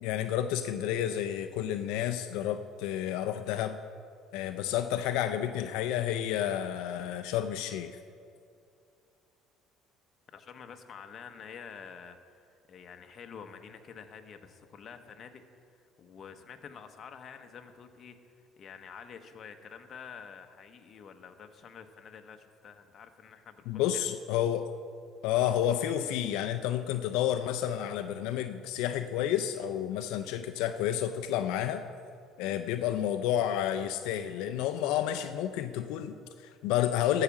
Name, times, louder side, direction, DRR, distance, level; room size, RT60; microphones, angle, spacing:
voice 1, 0.0-3.8 4.3-8.0 23.7-24.7 25.2-31.8 32.4-37.2, left 11 dB, 80° left, 8 dB, 0.4 m, -30 dB
voice 2, 10.3-24.1 25.5-25.6, left 6 dB, 40° left, 6 dB, 0.9 m, -48 dB
13.5 x 4.9 x 7.2 m, 2.4 s
cardioid pair, 120°, 0 cm